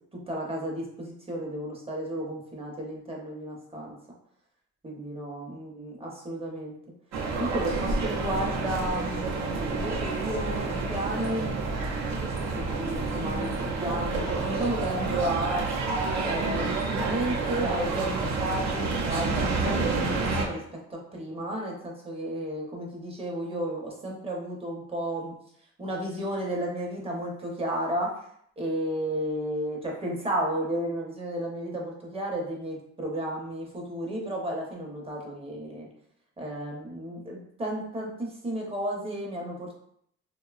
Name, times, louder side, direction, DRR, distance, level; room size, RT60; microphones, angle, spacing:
voice 1, 0.3-3.9 4.8-6.7 7.4-11.5 12.5-15.7 16.2-25.3 25.8-28.1 28.6-35.9 36.4-39.7, right 1 dB, 20° right, -2 dB, 0.7 m, -33 dB
sound 1, 7.1-20.5, right 3 dB, 60° right, 0.6 m, -29 dB
2.7 x 2.2 x 2.3 m, 0.69 s
cardioid pair, 90°, 30 cm